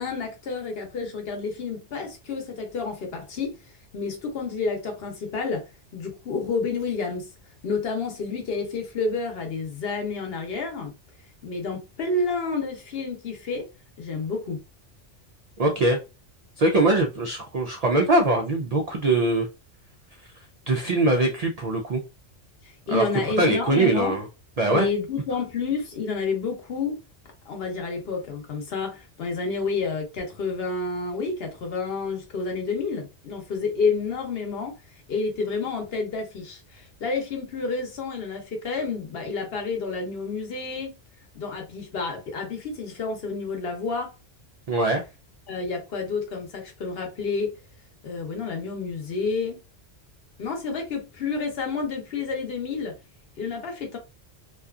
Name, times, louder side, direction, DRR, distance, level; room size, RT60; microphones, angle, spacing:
voice 1, 0.0-3.6 3.9-5.6 5.9-7.3 7.6-10.9 11.4-13.7 14.0-14.6 22.6-24.2 24.6-27.0 27.5-34.8 35.1-40.9 41.3-44.1 45.5-47.5 48.0-49.6 50.4-52.9 53.4-54.0, left 4 dB, 60° left, 0.9 m, -29 dB
voice 2, 15.6-16.0 16.6-19.5 20.7-22.0 22.9-23.1 23.4-24.2 24.6-24.9 44.7-45.0, right 2 dB, 80° right, 0.3 m, -22 dB
2.6 x 2.3 x 2.3 m
omnidirectional pair, 1.2 m